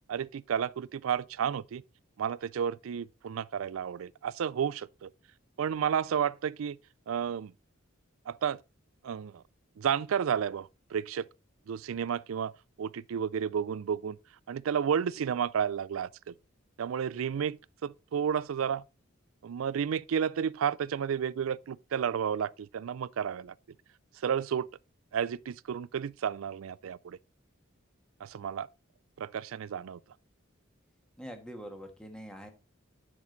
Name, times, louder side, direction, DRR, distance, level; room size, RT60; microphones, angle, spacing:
voice 1, 0.1-1.8 2.2-5.1 5.6-6.8 7.1-7.5 8.3-8.6 9.0-9.4 9.8-11.3 11.7-12.5 12.8-14.2 14.5-16.3 16.8-18.8 19.4-23.5 24.2-24.7 25.1-27.2 28.2-28.7 29.2-30.0, right 8 dB, 80° right, 0.4 m, -32 dB
voice 2, 31.2-32.5, equal, 5° left, 1.5 m, -44 dB
8.5 x 6.2 x 3.9 m
head